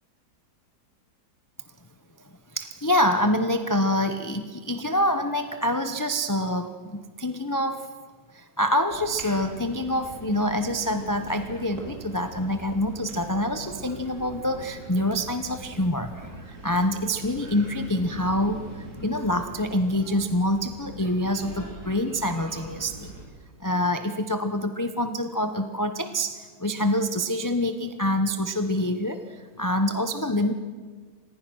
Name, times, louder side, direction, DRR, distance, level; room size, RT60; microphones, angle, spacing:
voice 1, 2.5-7.9 8.3-18.6 19.0-23.1 23.6-30.5, left 1 dB, 15° left, 7 dB, 0.7 m, -26 dB
sound 1, 8.9-23.2, right 1 dB, 70° right, 4.3 m, -42 dB
26.0 x 19.5 x 6.3 m, 1.5 s
omnidirectional pair, 1.7 m